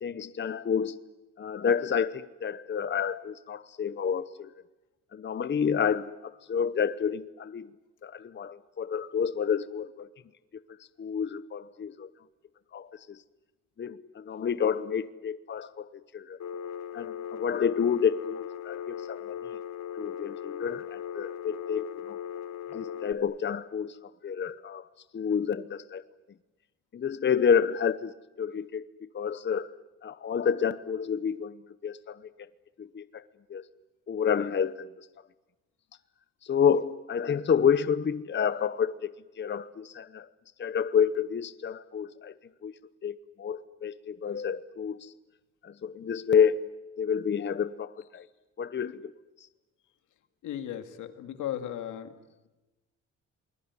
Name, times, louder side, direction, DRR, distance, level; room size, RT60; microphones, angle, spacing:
voice 1, 0.0-1.0 1.4-4.5 5.1-7.7 8.0-10.1 11.0-12.1 12.7-13.2 13.8-16.4 16.9-19.5 19.9-22.2 22.7-24.8 25.1-26.0 26.9-28.1 28.4-29.7 30.0-32.3 32.8-33.2 33.5-33.7 34.1-35.1 36.4-40.3 40.6-42.3 42.6-42.7 43.0-45.1 45.6-46.6 47.0-48.3 48.6-49.1 49.4-49.5, left 7 dB, 35° left, 14 dB, 0.9 m, -29 dB
Telephone, 16.4-23.1, left 9 dB, 65° left, 1.6 m, -38 dB
voice 2, 50.4-52.1, left 10 dB, 90° left, 8 dB, 2.2 m, -36 dB
28.0 x 21.0 x 9.6 m, 1.1 s
cardioid pair, 90°, 30 cm